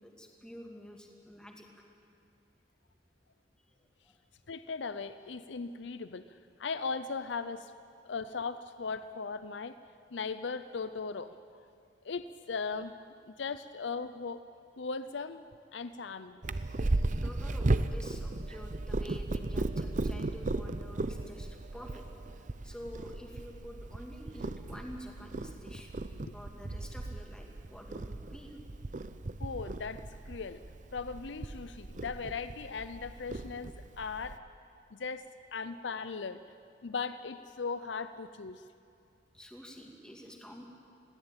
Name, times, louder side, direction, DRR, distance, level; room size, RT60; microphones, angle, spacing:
voice 1, 0.0-1.8 3.7-3.8 4.0-4.2 17.2-22.1 22.4-26.0 26.3-28.5 39.3-40.6, equal, 5° left, 1 dB, 2.3 m, -49 dB
voice 2, 4.5-6.2 6.6-7.7 8.0-9.8 10.1-11.3 12.0-12.9 13.3-14.4 14.8-15.4 15.7-16.4 26.3-26.4 29.4-30.6 30.9-34.4 34.9-36.4 36.8-38.6, left 4 dB, 75° left, 12 dB, 0.6 m, -38 dB
Purr, 16.4-34.4, right 2 dB, 45° right, 0.7 m, -36 dB
21.0 x 16.0 x 9.0 m, 2.4 s
head